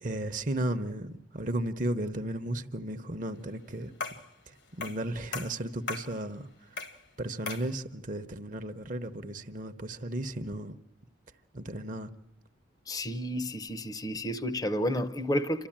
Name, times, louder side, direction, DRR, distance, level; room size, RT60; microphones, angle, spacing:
voice 1, 0.0-3.9 4.7-6.5 7.2-10.8 11.5-12.1, right 1 dB, 45° right, 0.9 m, -34 dB
sound 1, 4.0-4.3 4.8-5.1 5.3-6.1 6.8-7.0 7.5-7.7, left 4 dB, 65° left, 1.5 m, -37 dB
voice 2, 12.9-15.7, equal, 20° left, 0.7 m, -31 dB
29.0 x 13.5 x 8.8 m
head